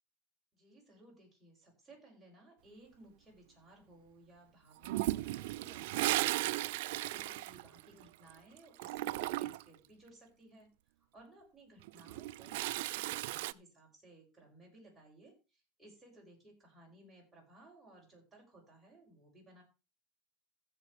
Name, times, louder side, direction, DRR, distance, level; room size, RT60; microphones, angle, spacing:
voice 1, 0.5-10.7 11.1-19.6, right 1 dB, 10° right, -3 dB, 7.2 m, -60 dB
Toilet flush, 4.8-8.3 8.6-9.7 11.8-13.5, right 17 dB, 75° right, 0.4 m, -36 dB
16.0 x 7.5 x 3.4 m, 0.29 s
supercardioid pair, 115°, 0 cm